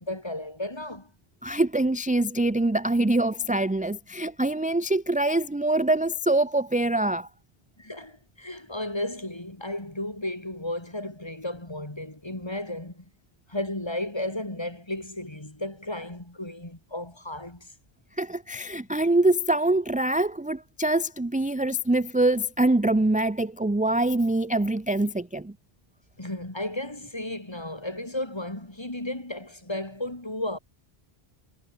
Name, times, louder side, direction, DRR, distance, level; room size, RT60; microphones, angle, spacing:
voice 1, 0.0-1.1 7.8-13.0 13.5-17.7 26.2-30.6, left 1 dB, 25° left, 3.0 m, -34 dB
voice 2, 1.4-7.3 18.2-25.5, right 2 dB, 10° right, 0.4 m, -24 dB
omnidirectional pair, 1.1 m